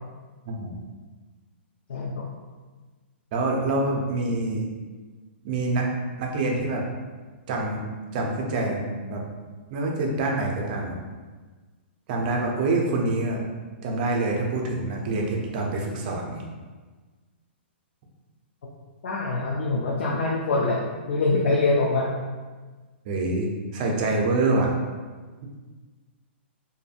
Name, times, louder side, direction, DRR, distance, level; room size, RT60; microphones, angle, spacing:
voice 1, 0.5-0.8 3.3-4.6 5.4-5.9 6.2-6.8 7.5-7.9 8.1-9.2 9.7-11.0 12.1-13.4 13.8-16.4 23.0-24.7, right 2 dB, 45° right, 0 dB, 0.5 m, -26 dB
voice 2, 1.9-2.2 19.0-20.8 21.1-22.1, left 3 dB, 75° left, -3 dB, 0.4 m, -24 dB
2.6 x 2.5 x 2.4 m, 1.4 s
hypercardioid pair, 145°, 6 cm